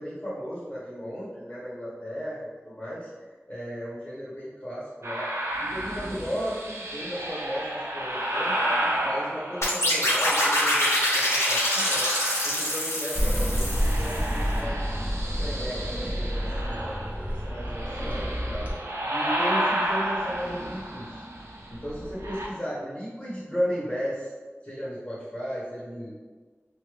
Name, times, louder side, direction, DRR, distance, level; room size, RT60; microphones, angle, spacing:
voice 1, 0.0-3.1 3.5-5.3 5.6-8.6 9.0-12.1 12.4-14.8 15.4-18.7 19.0-21.2 21.7-24.3 24.6-26.2, equal, 25° left, -8 dB, 0.9 m, -35 dB
sound 1, 5.0-10.4 10.9-13.1 13.4-22.5, right 1 dB, 75° right, 0.5 m, -32 dB
sound 2, 9.6-14.4, left 1 dB, 75° left, 0.7 m, -25 dB
sound 3, 13.1-18.7, equal, 30° right, 0.7 m, -29 dB
2.6 x 2.3 x 3.1 m, 1.4 s
wide cardioid pair, 45°, 5 cm